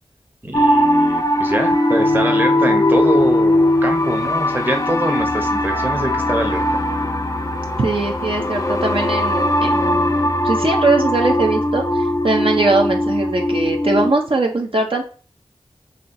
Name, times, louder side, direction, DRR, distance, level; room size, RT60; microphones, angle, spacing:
voice 1, 0.4-6.6, right 1 dB, 20° right, 3 dB, 0.7 m, -24 dB
sound 1, 0.5-14.1, left 1 dB, 30° left, 0.5 m, -19 dB
voice 2, 7.8-15.0, right 3 dB, 60° right, 2 dB, 0.6 m, -21 dB
4.2 x 3.1 x 2.6 m, 0.38 s
wide cardioid pair, 65°, 10 cm